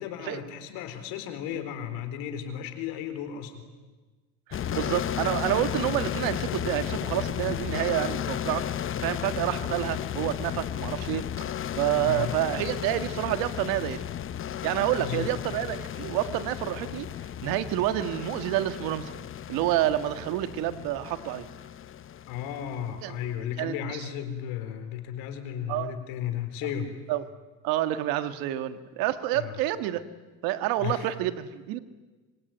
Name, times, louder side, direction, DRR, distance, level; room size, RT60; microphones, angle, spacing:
voice 1, 0.0-3.6 12.0-12.3 15.0-15.3 22.3-27.0 29.3-29.6 30.8-31.1, left 9 dB, 85° left, 9 dB, 4.2 m, -34 dB
sound 1, 4.5-23.2, left 10 dB, 35° left, 0.9 m, -34 dB
voice 2, 4.5-8.7 9.0-11.5 11.7-14.0 14.6-17.1 17.4-19.1 19.5-21.5 23.0-23.1 23.6-24.0 25.7-25.9 27.1-27.2 27.6-30.0 30.4-31.8, right 13 dB, 80° right, 10 dB, 1.9 m, -28 dB
25.5 x 24.5 x 9.3 m, 1.3 s
cardioid pair, 115°, 35 cm